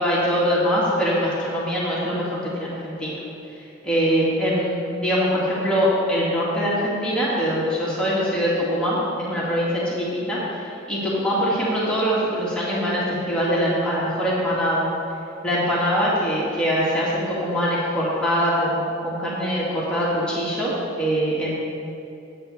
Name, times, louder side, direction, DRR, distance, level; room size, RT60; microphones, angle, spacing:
voice 1, 0.0-3.2 3.8-14.8 15.4-20.7 21.0-21.5, equal, 5° left, -8 dB, 2.0 m, -23 dB
9.3 x 6.0 x 7.0 m, 2.6 s
head